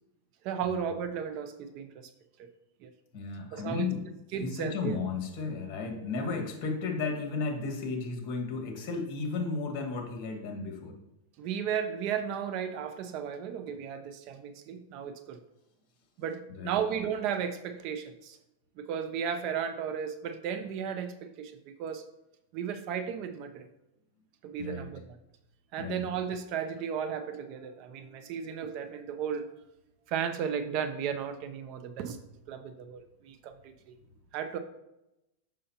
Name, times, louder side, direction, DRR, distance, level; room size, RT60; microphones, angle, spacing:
voice 1, 0.4-2.1 2.8-2.9 3.5-3.9 4.3-5.0 6.2-6.3 11.4-15.4 16.2-18.4 18.8-22.0 22.5-23.7 24.4-25.0 25.7-29.5 30.1-32.2 32.5-34.0 34.3-34.6, right 8 dB, 40° right, 10 dB, 0.5 m, -34 dB
voice 2, 3.1-4.0 4.4-10.9 16.6-16.7 24.6-24.8 25.8-26.0, left 4 dB, 45° left, 2 dB, 1.7 m, -34 dB
6.6 x 6.2 x 2.9 m, 0.91 s
supercardioid pair, 150°, 0 cm